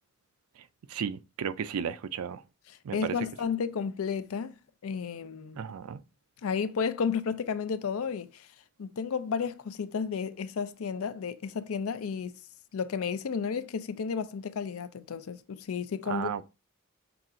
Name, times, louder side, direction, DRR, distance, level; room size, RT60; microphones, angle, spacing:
voice 1, 0.6-2.4 2.8-3.2 5.6-6.0 16.1-16.4, right 7 dB, 90° right, 0.4 m, -34 dB
voice 2, 2.9-4.6 4.8-5.6 6.4-8.5 8.8-12.3 12.7-16.3, left 6 dB, 85° left, 0.4 m, -32 dB
5.9 x 2.4 x 3.7 m
head